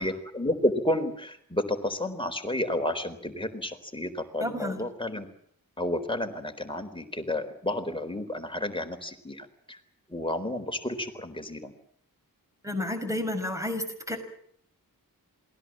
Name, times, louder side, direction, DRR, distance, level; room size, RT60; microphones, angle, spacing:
voice 1, 0.0-5.3 5.8-9.8 10.1-11.7, left 1 dB, 15° left, 5 dB, 4.0 m, -31 dB
voice 2, 4.4-4.8 12.6-14.2, left 1 dB, 10° right, 6 dB, 6.0 m, -31 dB
27.5 x 20.0 x 7.5 m, 0.66 s
wide cardioid pair, 95°, 36 cm